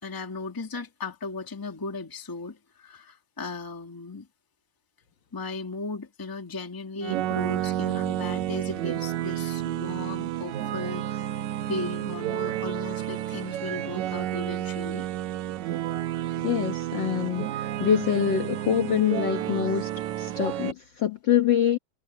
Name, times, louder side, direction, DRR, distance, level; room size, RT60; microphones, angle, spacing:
voice 1, 0.0-4.3 5.3-11.3 11.6-15.1, left 3 dB, 10° left, 1.5 m, -36 dB
sound 1, 7.0-20.7, right 12 dB, 70° right, 2.2 m, -30 dB
voice 2, 16.4-19.9 20.2-21.8, left 9 dB, 55° left, 1.4 m, -25 dB
omnidirectional pair, 3.7 m